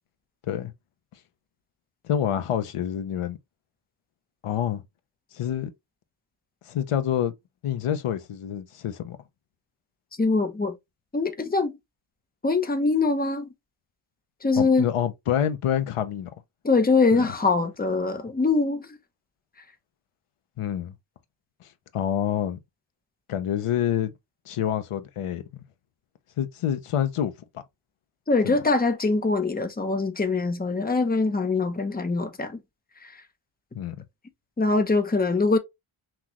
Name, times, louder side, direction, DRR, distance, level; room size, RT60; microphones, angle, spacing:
voice 1, 2.0-3.4 4.4-4.8 5.3-5.7 6.7-7.3 7.6-9.2 14.6-16.3 17.1-17.3 20.6-20.9 21.6-21.7 21.9-22.6 23.3-24.1 24.5-25.6 26.4-27.6 28.4-28.6 33.7-34.0, left 10 dB, 85° left, 0.8 m, -27 dB
voice 2, 10.2-10.8 11.1-11.8 12.4-13.5 14.4-14.9 16.6-19.0 28.3-32.6 33.0-33.2 34.6-35.6, left 3 dB, 20° left, 0.8 m, -23 dB
5.9 x 2.4 x 2.9 m
wide cardioid pair, 105°, 50 cm